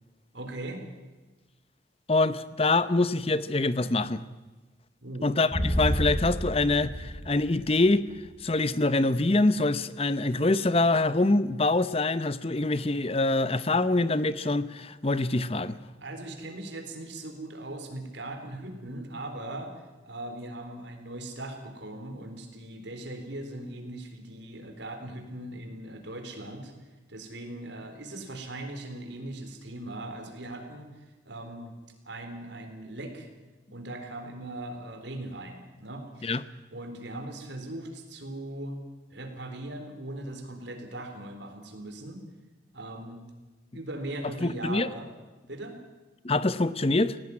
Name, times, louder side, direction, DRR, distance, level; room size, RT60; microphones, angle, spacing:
voice 1, 0.3-0.8 5.0-5.3 16.0-19.7 20.0-26.7 27.1-31.7 32.0-33.3 33.7-36.4 36.7-38.8 39.1-42.2 42.7-43.3 43.7-45.1 45.5-45.8, right 1 dB, 70° right, 5 dB, 4.0 m, -39 dB
voice 2, 2.1-4.2 5.2-8.1 8.4-15.8 36.2-36.4 44.4-44.9 46.2-47.2, left 2 dB, 30° left, 15 dB, 0.8 m, -25 dB
sound 1, 5.5-8.1, equal, 5° left, 4.8 m, -30 dB
18.0 x 17.5 x 9.8 m, 1.2 s
head